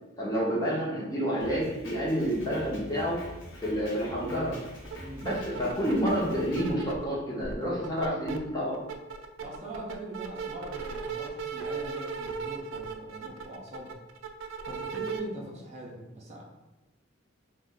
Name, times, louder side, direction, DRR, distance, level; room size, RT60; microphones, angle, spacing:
voice 1, 0.2-3.2 3.6-4.6 5.2-8.8, equal, 20° left, -5 dB, 0.7 m, -29 dB
Drum kit, 1.4-6.7, equal, 75° left, 0.7 m, -45 dB
breaking up, 4.8-5.0 5.2-7.1 7.4-8.4 8.7-15.2, right 5 dB, 90° right, 0.3 m, -36 dB
voice 2, 5.0-5.3 9.4-13.9 14.6-16.4, right 2 dB, 35° right, -3 dB, 0.5 m, -42 dB
2.4 x 2.1 x 3.7 m, 1.1 s
head